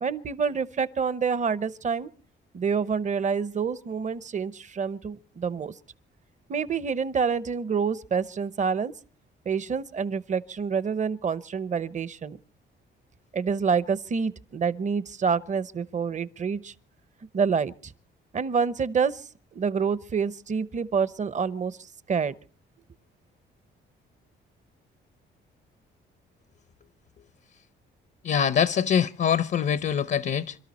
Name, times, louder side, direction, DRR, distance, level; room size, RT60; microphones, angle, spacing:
voice 1, 0.0-2.1 2.5-5.7 6.5-8.9 9.5-12.4 13.3-16.7 17.3-17.9 18.3-22.3, right 6 dB, 40° right, 0.9 m, -27 dB
voice 2, 28.2-30.6, left 8 dB, 55° left, 0.7 m, -24 dB
27.0 x 12.5 x 4.2 m
cardioid pair, 90°, 20 cm